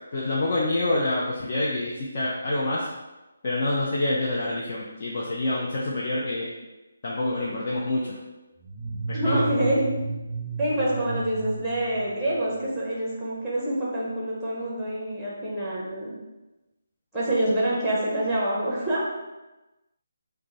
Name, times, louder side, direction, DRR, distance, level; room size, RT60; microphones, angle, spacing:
voice 1, 0.1-2.9 3.4-6.5 7.0-8.2 9.1-9.4, left 2 dB, 40° left, -5 dB, 0.5 m, -27 dB
sound 1, 8.6-12.7, right 3 dB, 30° right, 0.5 m, -33 dB
voice 2, 9.1-9.8 10.6-16.1 17.1-19.1, right 1 dB, ahead, -7 dB, 1.0 m, -26 dB
5.0 x 2.2 x 3.0 m, 1.1 s
figure-of-eight pair, 150°, 0 cm